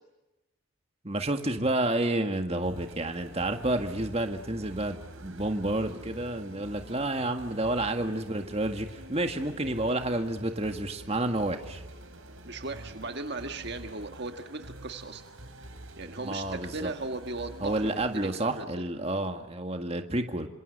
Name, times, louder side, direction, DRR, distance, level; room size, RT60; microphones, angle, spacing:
voice 1, 1.0-11.8 16.2-16.9 17.6-20.5, right 1 dB, 30° right, 6 dB, 2.0 m, -30 dB
sound 1, 2.6-18.6, right 1 dB, 70° right, 3.9 m, -46 dB
voice 2, 12.4-15.2 15.6-15.7 16.0-18.9, right 3 dB, 50° right, 6 dB, 1.6 m, -38 dB
27.5 x 26.5 x 6.8 m, 1.0 s
head